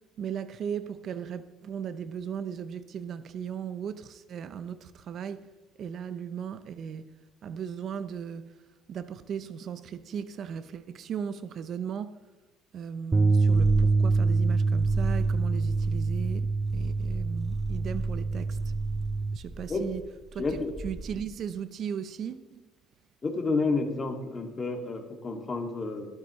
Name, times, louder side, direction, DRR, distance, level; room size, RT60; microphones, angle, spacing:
voice 1, 0.2-5.5 5.8-7.2 7.4-8.6 8.9-12.2 12.7-18.6 19.3-20.0 20.3-20.6 20.8-22.7, right 8 dB, 55° right, 0.7 m, -37 dB
Bass guitar, 13.1-19.4, right 3 dB, 20° right, 0.4 m, -25 dB
Purr, 13.4-21.4, right 1 dB, 5° right, 0.8 m, -38 dB
voice 2, 20.4-20.7 23.2-26.1, left 3 dB, 30° left, 2.3 m, -30 dB
21.5 x 8.3 x 3.2 m
supercardioid pair, 90°, 0 cm